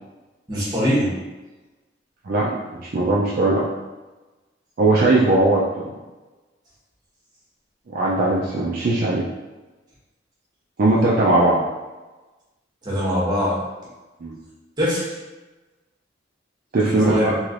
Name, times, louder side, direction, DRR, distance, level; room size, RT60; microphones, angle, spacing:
voice 1, 0.5-1.1 12.8-13.6 14.8-15.2 16.8-17.4, equal, 25° right, -6 dB, 1.0 m, -22 dB
voice 2, 2.2-3.7 4.8-5.7 7.9-9.3 10.8-11.6 14.2-14.4 16.7-17.4, right 2 dB, 50° right, -5 dB, 0.4 m, -19 dB
3.2 x 3.0 x 2.5 m, 1.2 s
head